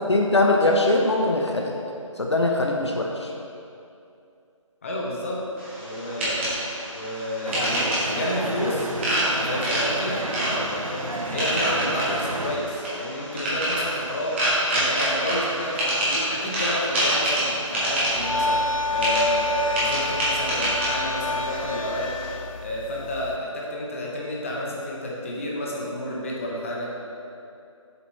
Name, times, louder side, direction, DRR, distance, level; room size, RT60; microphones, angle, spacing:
voice 1, 0.1-1.7 2.2-3.3, left 2 dB, 55° left, 1 dB, 0.8 m, -21 dB
voice 2, 4.8-5.4 5.8-6.7 6.9-8.9 9.4-14.4 14.7-22.2 22.6-26.9, left 1 dB, 25° left, -4 dB, 0.9 m, -30 dB
sound 1, 5.6-22.3, right 1 dB, 20° right, 1.8 m, -27 dB
sound 2, 7.4-12.6, right 1 dB, 85° right, 0.9 m, -31 dB
sound 3, 18.1-23.4, left 2 dB, 80° left, 0.5 m, -29 dB
7.4 x 6.5 x 4.1 m, 2.6 s
figure-of-eight pair, 160°, 17 cm